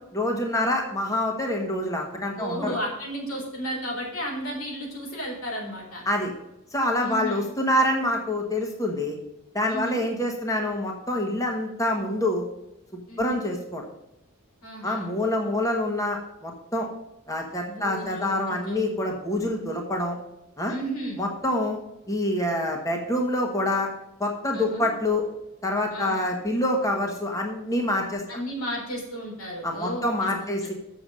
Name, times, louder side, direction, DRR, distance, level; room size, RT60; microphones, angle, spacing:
voice 1, 0.1-2.8 6.1-6.3 6.7-9.2 9.5-12.4 13.2-13.8 14.8-16.9 17.3-20.1 20.6-20.7 21.2-21.8 22.1-23.9 24.2-25.2 25.6-28.2 29.6-30.7, left 1 dB, 15° left, 1 dB, 1.3 m, -26 dB
voice 2, 2.4-6.0 7.0-7.5 9.7-10.0 13.1-13.4 14.6-15.1 17.7-18.9 20.7-21.2 24.5-24.9 25.9-26.3 28.3-30.0 30.4-30.5, equal, 90° left, -1 dB, 4.1 m, -33 dB
7.2 x 6.9 x 7.2 m, 0.89 s
head